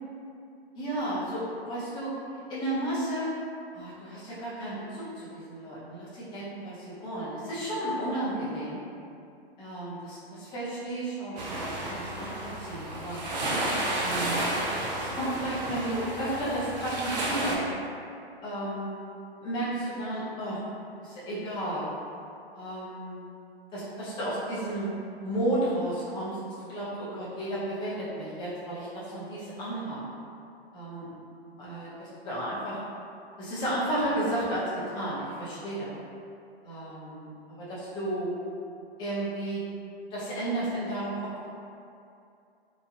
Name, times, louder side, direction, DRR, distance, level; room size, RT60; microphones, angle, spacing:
voice 1, 0.7-2.1 2.5-3.3 3.7-8.8 9.6-13.2 13.8-14.4 14.9-17.7 18.4-18.9 19.4-20.6 21.0-21.9 22.5-23.2 23.7-24.9 25.2-30.0 30.7-31.1 31.6-32.8 33.4-35.9 36.6-38.3 39.0-39.6 40.1-41.1, right 1 dB, 15° left, -10 dB, 0.6 m, -33 dB
sound 1, 11.4-17.6, right 1 dB, 45° right, 0.5 m, -32 dB
3.0 x 2.4 x 2.4 m, 2.5 s
hypercardioid pair, 135°, 32 cm